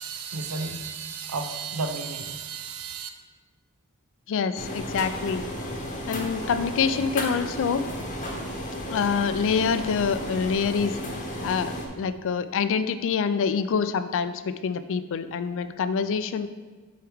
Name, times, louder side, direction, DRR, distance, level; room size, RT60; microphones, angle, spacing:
voice 1, 0.0-3.1, right 4 dB, 75° right, 7 dB, 0.6 m, -33 dB
voice 2, 4.3-5.4 6.1-7.8 8.9-11.0 11.4-16.5, left 6 dB, 60° left, 12 dB, 0.4 m, -26 dB
sound 1, 4.6-11.9, equal, 35° left, 0.9 m, -33 dB
7.7 x 4.7 x 3.5 m, 1.4 s
head